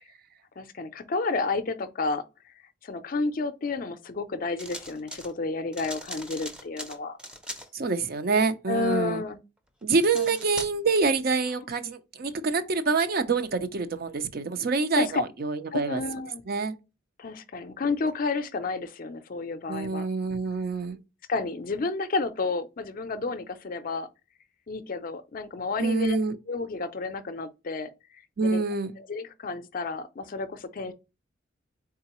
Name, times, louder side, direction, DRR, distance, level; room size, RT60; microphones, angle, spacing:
voice 1, 0.6-2.2 2.8-7.2 8.7-9.4 10.1-10.3 14.9-15.2 15.7-16.4 17.2-20.1 21.3-24.1 24.7-26.2 26.5-27.9 28.4-28.6 29.0-30.9, left 3 dB, 45° left, 0.5 m, -31 dB
sound 1, 4.6-5.3 5.7-7.7 9.8-11.0, equal, 5° right, 0.5 m, -40 dB
voice 2, 7.7-9.2 9.8-16.0 16.5-16.8 19.7-21.0 25.8-26.4 28.4-28.9, right 4 dB, 50° right, 0.5 m, -26 dB
3.9 x 3.6 x 2.9 m
head